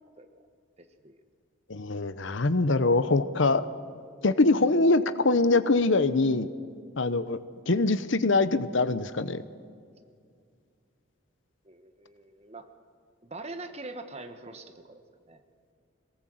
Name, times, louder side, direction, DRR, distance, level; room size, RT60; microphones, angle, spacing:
voice 1, 0.8-1.2 11.6-12.7 13.2-15.0 15.3-15.4, right 2 dB, 30° right, 7 dB, 1.2 m, -43 dB
voice 2, 1.7-3.6 4.2-6.5 7.0-7.4 7.7-9.4, left 3 dB, 65° left, 13 dB, 0.8 m, -23 dB
22.5 x 18.5 x 7.8 m, 2.2 s
head